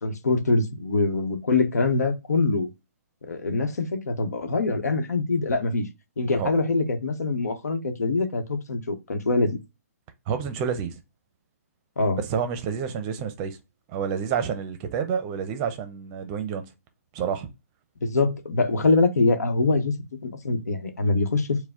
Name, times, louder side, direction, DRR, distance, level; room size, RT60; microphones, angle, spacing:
voice 1, 0.0-2.7 3.3-5.9 6.2-9.6 12.0-12.2 18.0-19.9 20.2-21.6, left 3 dB, 85° left, 1.0 m, -24 dB
voice 2, 10.3-11.0 12.2-13.6 13.9-16.6 17.1-17.5, right 7 dB, 25° right, 0.6 m, -29 dB
4.6 x 2.2 x 3.6 m
hypercardioid pair, 155°, 9 cm